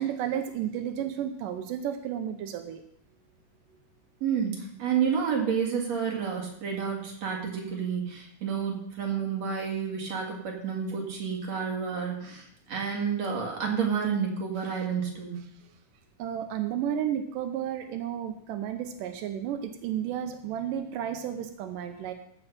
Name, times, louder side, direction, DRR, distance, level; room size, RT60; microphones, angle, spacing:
voice 1, 0.0-2.8 14.7-14.8 16.2-22.1, right 9 dB, 85° right, 7 dB, 2.4 m, -32 dB
voice 2, 4.2-15.4, right 7 dB, 55° right, 0 dB, 3.2 m, -30 dB
15.0 x 5.5 x 5.9 m, 0.70 s
omnidirectional pair, 3.7 m